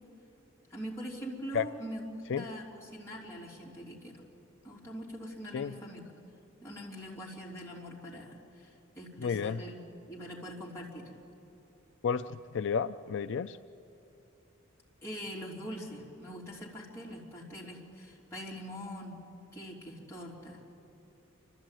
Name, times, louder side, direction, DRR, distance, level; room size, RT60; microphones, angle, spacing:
voice 1, 0.7-4.1 4.6-6.1 6.6-11.0 15.0-19.2 19.5-20.6, equal, 15° left, -5 dB, 3.2 m, -43 dB
voice 2, 9.2-9.6 12.0-13.6, left 6 dB, 60° left, 9 dB, 0.4 m, -31 dB
29.5 x 13.0 x 9.1 m, 2.9 s
head